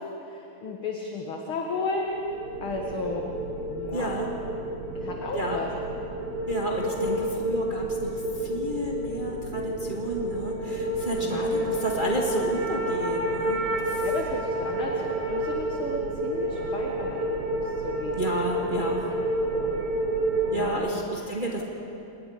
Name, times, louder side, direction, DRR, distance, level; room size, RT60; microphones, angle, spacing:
voice 1, 0.0-2.2 2.6-3.3 3.7-4.1 5.0-5.7 11.2-11.9 14.0-18.2 19.5-19.8 20.5-20.8, left 3 dB, 50° left, 0 dB, 2.1 m, -34 dB
sound 1, 2.1-20.7, right 1 dB, 75° right, 3.3 m, -29 dB
voice 2, 3.9-4.3 5.3-5.6 6.5-8.1 8.4-14.0 18.2-19.0 20.5-21.6, right 1 dB, 20° right, -2 dB, 1.6 m, -31 dB
28.0 x 19.5 x 5.1 m, 2.7 s
omnidirectional pair, 3.4 m